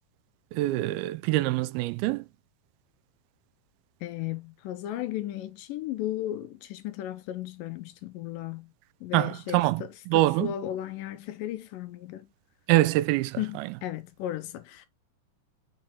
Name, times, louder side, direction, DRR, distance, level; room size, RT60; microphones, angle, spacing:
voice 1, 0.5-2.2 9.1-10.5 12.7-13.7, right 17 dB, 85° right, 2.4 m, -25 dB
voice 2, 4.0-8.7 9.0-12.3 13.4-14.9, left 12 dB, 80° left, 2.1 m, -35 dB
6.6 x 3.8 x 4.2 m
omnidirectional pair, 4.3 m